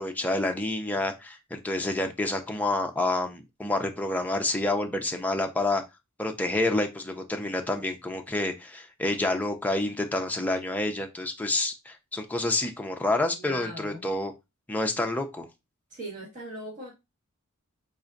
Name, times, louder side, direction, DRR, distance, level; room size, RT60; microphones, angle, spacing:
voice 1, 0.0-5.8 6.2-14.3 14.7-15.5, left 2 dB, 10° left, 0.4 m, -28 dB
voice 2, 13.4-14.1 15.9-16.9, equal, 40° right, 1.9 m, -39 dB
4.1 x 2.5 x 2.4 m
head